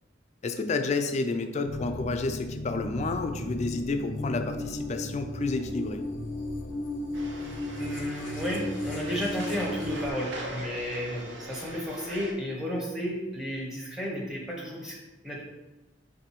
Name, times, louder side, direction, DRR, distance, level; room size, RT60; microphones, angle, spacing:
voice 1, 0.4-6.0, left 3 dB, 40° left, 6 dB, 0.3 m, -30 dB
sound 1, 1.7-10.1, left 1 dB, 85° left, 0.6 m, -35 dB
sound 2, 7.1-12.3, right 1 dB, 80° right, 0.8 m, -41 dB
voice 2, 7.8-15.4, equal, 5° right, -3 dB, 0.8 m, -33 dB
5.9 x 2.6 x 3.0 m, 1.0 s
head